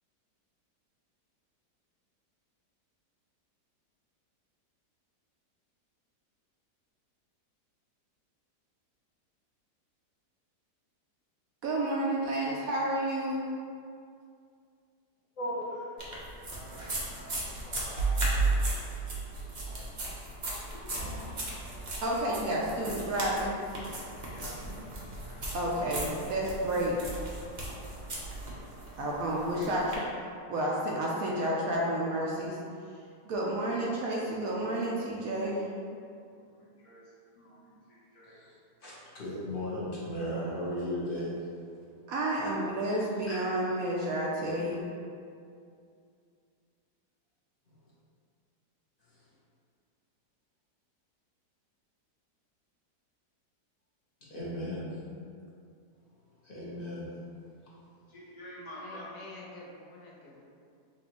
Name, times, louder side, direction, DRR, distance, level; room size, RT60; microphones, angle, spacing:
voice 1, 11.6-13.5 22.0-23.6 25.5-27.0 29.0-30.0 30.5-32.6 33.2-35.7 42.1-44.9, right 1 dB, 70° right, -3 dB, 0.9 m, -30 dB
voice 2, 15.4-15.9 16.5-18.8 19.7-19.9 20.7-21.3 24.3-24.6 29.3-29.5 36.4-37.0 37.3-38.4 58.1-59.2, equal, 60° left, -8 dB, 0.3 m, -44 dB
sound 1, 16.0-29.9, right 2 dB, 45° right, 0.6 m, -35 dB
voice 3, 38.8-41.3 43.3-43.4 54.3-54.9 56.4-57.0, equal, 40° left, -8 dB, 1.0 m, -35 dB
voice 4, 58.8-60.5, left 2 dB, 75° left, -2 dB, 1.3 m, -48 dB
6.1 x 2.6 x 2.9 m, 2.4 s
omnidirectional pair, 1.8 m